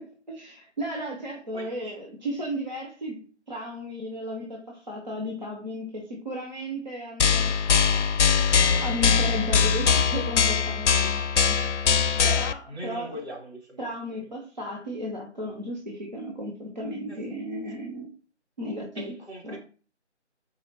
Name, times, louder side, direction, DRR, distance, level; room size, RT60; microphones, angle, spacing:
voice 1, 0.0-8.5 8.8-11.5 11.8-13.2 13.8-18.1 18.6-19.2 19.4-19.6, equal, 40° right, 0.7 m, -35 dB
sound 1, 7.2-12.5, left 6 dB, 80° left, 0.5 m, -22 dB
voice 2, 12.7-13.8 14.2-14.3 17.1-17.2 18.9-19.6, equal, 65° right, 2.1 m, -40 dB
4.2 x 3.3 x 2.8 m
figure-of-eight pair, 175°, 36 cm